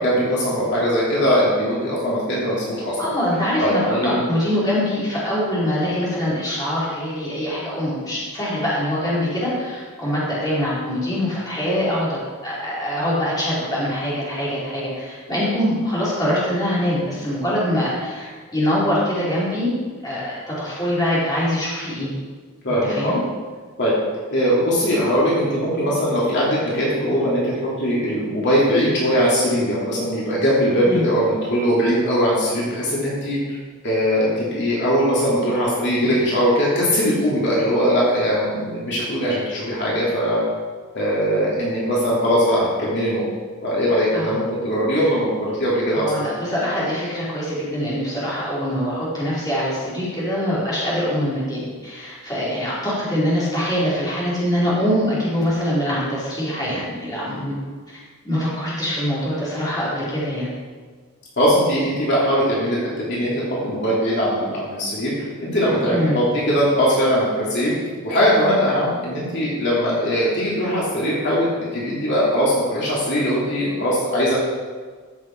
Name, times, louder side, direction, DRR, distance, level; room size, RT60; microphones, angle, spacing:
voice 1, 0.0-3.1 3.6-4.2 22.6-23.1 23.8-23.9 24.3-33.6 33.8-40.4 40.9-43.2 43.6-46.1 61.4-67.7 68.0-74.4, equal, 50° left, -7 dB, 2.9 m, -20 dB
voice 2, 3.0-19.7 20.0-22.1 22.8-23.2 30.9-31.1 44.1-44.4 45.0-45.1 45.9-57.6 58.2-60.5 65.9-66.2, equal, 15° left, -8 dB, 4.1 m, -23 dB
14.5 x 7.3 x 4.6 m, 1.5 s
head